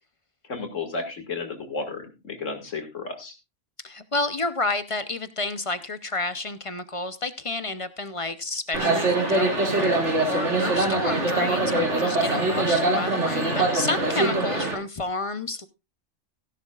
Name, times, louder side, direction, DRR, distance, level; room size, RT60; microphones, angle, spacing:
voice 1, 0.5-3.4 14.5-14.6, left 3 dB, 70° left, 5 dB, 2.5 m, -33 dB
voice 2, 3.8-15.7, left 2 dB, 30° left, 12 dB, 0.6 m, -30 dB
sound 1, 8.7-14.7, right 2 dB, 65° right, 2.9 m, -23 dB
16.0 x 11.0 x 2.4 m, 0.27 s
omnidirectional pair, 1.3 m